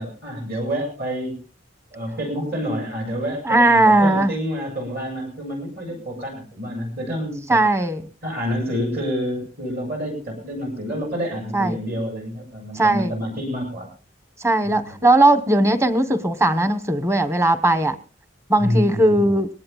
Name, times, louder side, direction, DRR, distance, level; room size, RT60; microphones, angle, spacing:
voice 1, 0.0-1.4 1.9-7.6 8.2-13.9 14.6-15.0 18.6-19.4, equal, 60° right, 7.8 m, -28 dB
voice 2, 3.4-4.3 7.5-8.0 11.5-11.8 12.7-13.1 14.4-18.0 18.5-19.5, right 2 dB, 15° right, 1.0 m, -18 dB
22.5 x 18.5 x 2.3 m
head